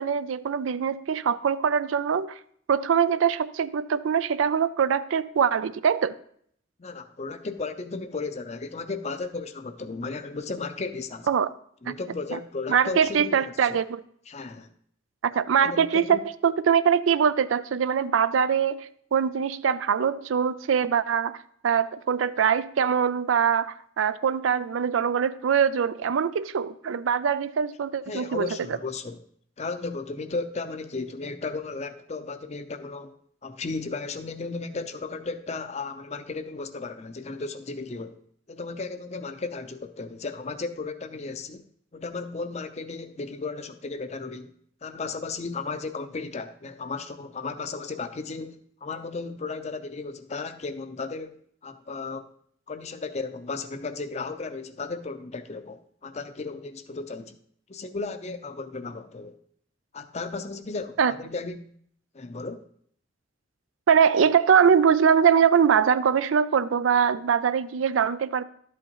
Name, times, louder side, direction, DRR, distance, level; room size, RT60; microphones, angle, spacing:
voice 1, 0.0-2.4 2.7-6.1 11.3-11.5 12.3-12.4 12.7-14.0 15.2-21.4 21.6-28.5 61.0-61.1 63.9-68.4, right 7 dB, 90° right, 0.4 m, -23 dB
voice 2, 6.8-11.3 11.8-13.8 14.3-14.7 15.6-16.2 28.1-29.2 29.6-33.1 33.4-38.2 38.5-41.6 41.9-44.5 44.8-51.4 51.6-52.3 52.7-57.4 57.7-59.4 59.9-61.7 62.1-62.6, left 3 dB, 35° left, 0.5 m, -35 dB
11.5 x 7.9 x 2.9 m
head